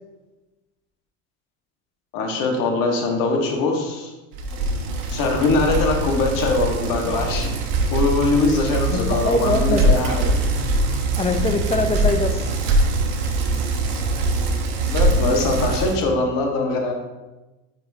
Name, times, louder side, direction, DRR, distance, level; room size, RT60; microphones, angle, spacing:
voice 1, 2.1-4.1 5.1-7.5 7.9-10.4 14.8-16.9, left 3 dB, 60° left, 1 dB, 1.6 m, -22 dB
Bicycle, 4.3-16.0, right 2 dB, 75° right, 1.2 m, -22 dB
voice 2, 8.9-9.9 11.2-12.6, left 3 dB, 15° left, 7 dB, 0.6 m, -23 dB
9.4 x 5.0 x 2.8 m, 1.1 s
supercardioid pair, 95°, 38 cm